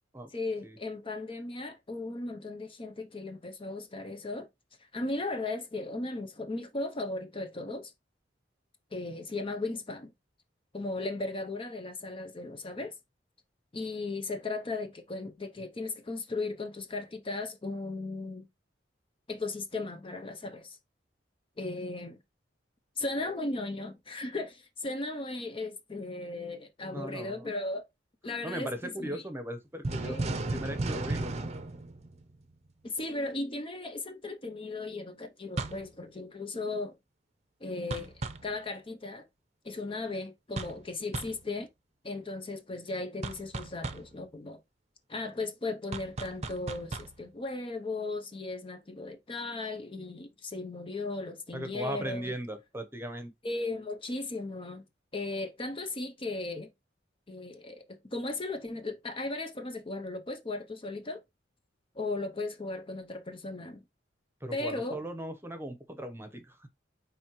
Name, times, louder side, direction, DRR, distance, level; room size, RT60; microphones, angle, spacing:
voice 1, 0.3-4.5 4.9-7.9 8.9-10.1 10.7-12.9 13.7-18.5 19.3-20.8 21.6-22.2 23.0-27.8 28.2-29.2 30.0-30.4 32.8-37.0 37.6-38.1 38.4-39.2 39.6-41.7 42.0-44.6 45.1-52.3 53.4-54.8 55.1-56.7 57.3-61.2 61.9-63.8 64.5-65.0, left 2 dB, 30° left, 0.7 m, -36 dB
voice 2, 26.8-27.5 28.4-31.3 51.5-53.3 64.4-66.7, right 1 dB, 15° right, 1.0 m, -38 dB
sound 1, 29.8-32.7 35.6-35.9 37.9-38.5 40.6-40.9 41.1-41.4 43.2-44.1 45.9-47.2, right 2 dB, 35° right, 0.7 m, -35 dB
9.2 x 3.3 x 3.1 m
head